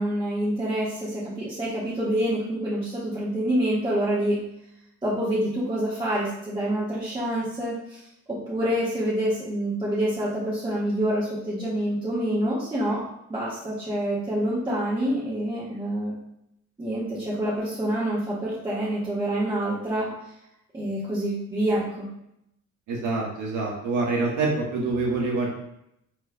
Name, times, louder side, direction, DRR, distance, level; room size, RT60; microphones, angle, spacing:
voice 1, 0.0-4.4 5.0-8.0 8.3-13.0 13.3-16.2 16.8-20.1 20.7-22.1, right 1 dB, 15° right, -9 dB, 1.6 m, -27 dB
voice 2, 22.9-25.5, right 3 dB, 80° right, -2 dB, 1.5 m, -26 dB
4.5 x 4.4 x 2.3 m, 0.79 s
cardioid pair, 90°, 30 cm